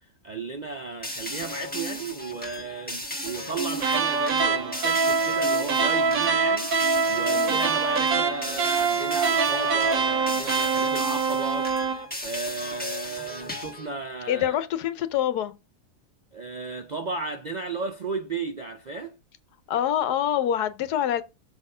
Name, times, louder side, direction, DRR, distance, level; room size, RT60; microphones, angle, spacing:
voice 1, 0.2-14.6 16.3-19.1, right 3 dB, 80° right, 0.4 m, -34 dB
sound 1, 1.0-13.9, left 1 dB, 5° left, 1.2 m, -36 dB
sound 2, 3.8-12.1, right 5 dB, 65° right, 1.3 m, -24 dB
voice 2, 7.3-7.6 14.3-15.5 19.7-21.2, left 10 dB, 85° left, 1.3 m, -25 dB
6.9 x 4.3 x 4.9 m
omnidirectional pair, 1.7 m